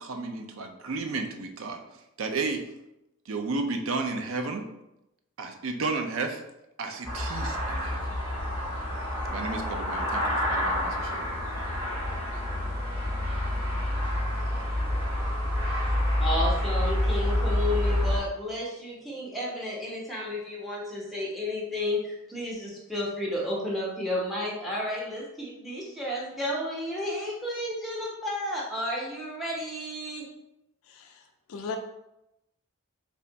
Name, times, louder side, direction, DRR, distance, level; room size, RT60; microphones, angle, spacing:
voice 1, 0.0-1.8 2.2-2.6 3.3-4.6 5.4-6.4 6.8-8.1 9.3-11.2, right 3 dB, 65° right, 5 dB, 0.5 m, -32 dB
sound 1, 7.0-18.2, left 1 dB, 20° right, 1.4 m, -28 dB
voice 2, 16.2-30.2, left 1 dB, ahead, -5 dB, 0.8 m, -32 dB
voice 3, 30.8-31.8, left 5 dB, 75° left, 5 dB, 0.4 m, -38 dB
3.4 x 2.5 x 3.8 m, 0.89 s
head